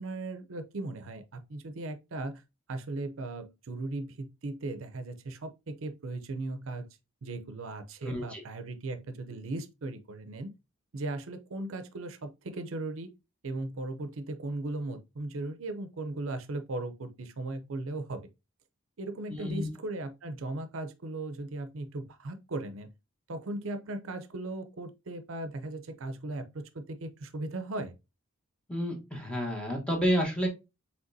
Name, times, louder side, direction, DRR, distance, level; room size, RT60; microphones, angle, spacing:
voice 1, 0.0-2.4 2.7-6.9 7.2-10.5 10.9-13.1 13.4-18.2 19.0-22.9 23.3-28.0, right 2 dB, 70° right, 0.6 m, -37 dB
voice 2, 8.0-8.4 19.4-19.7 28.7-30.5, equal, 5° left, 1.1 m, -30 dB
5.1 x 3.4 x 2.6 m
head